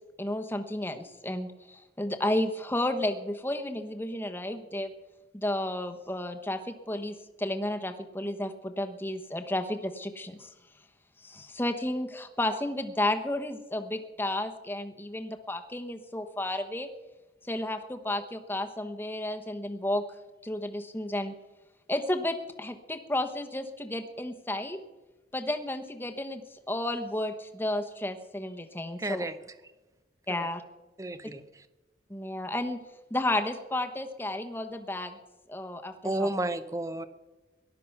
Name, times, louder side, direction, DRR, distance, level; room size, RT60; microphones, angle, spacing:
voice 1, 0.2-4.9 5.3-10.5 11.2-16.9 17.4-20.0 20.4-21.3 21.9-24.8 25.3-29.2 30.3-30.6 32.1-32.8 33.1-35.2 35.5-36.3, left 1 dB, 10° left, 6 dB, 1.0 m, -32 dB
voice 2, 29.0-29.4 30.3-30.5 31.0-31.6 36.0-37.1, right 1 dB, 20° right, 12 dB, 0.7 m, -32 dB
18.0 x 12.0 x 5.9 m, 1.1 s
head